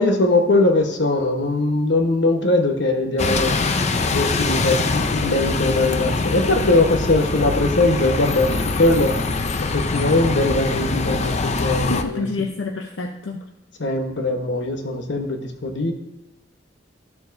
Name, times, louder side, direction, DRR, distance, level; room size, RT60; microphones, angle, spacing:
voice 1, 0.0-3.6 4.1-9.1 9.7-11.3 11.6-12.3 13.8-15.9, left 2 dB, 70° left, 5 dB, 1.2 m, -20 dB
Bus, 3.2-12.0, left 3 dB, 35° left, 0.5 m, -23 dB
voice 2, 11.8-13.5, left 3 dB, 85° left, 2 dB, 0.7 m, -28 dB
13.5 x 7.1 x 2.7 m, 0.92 s
head